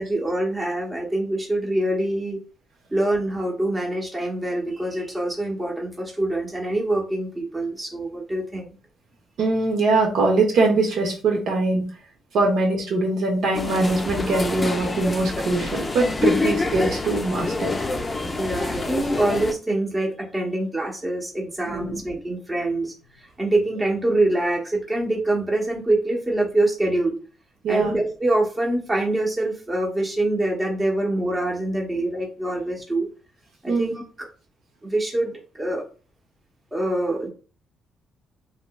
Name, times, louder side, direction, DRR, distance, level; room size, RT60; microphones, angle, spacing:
voice 1, 0.0-2.4 2.9-8.8 16.3-16.4 18.4-22.9 23.4-27.2 27.7-33.1 33.6-34.0 34.8-35.8 36.7-37.3, right 1 dB, 20° right, -1 dB, 0.9 m, -25 dB
voice 2, 9.4-11.8 12.3-17.8 21.7-22.0 27.6-27.9 33.7-33.9, right 3 dB, 75° right, 0 dB, 0.9 m, -22 dB
sound 1, 13.5-19.5, left 3 dB, 25° left, 0.5 m, -27 dB
3.0 x 2.8 x 2.3 m, 0.36 s
cardioid pair, 90°, 0 cm